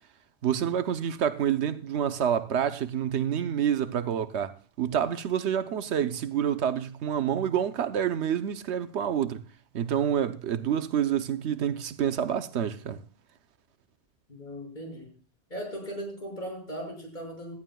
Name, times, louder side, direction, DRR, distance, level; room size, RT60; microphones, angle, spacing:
voice 1, 0.4-9.4 9.7-13.0, right 9 dB, 90° right, 1.0 m, -28 dB
voice 2, 14.3-15.1 15.5-17.5, equal, 45° left, 6.2 m, -38 dB
18.0 x 13.0 x 2.3 m
omnidirectional pair, 1.1 m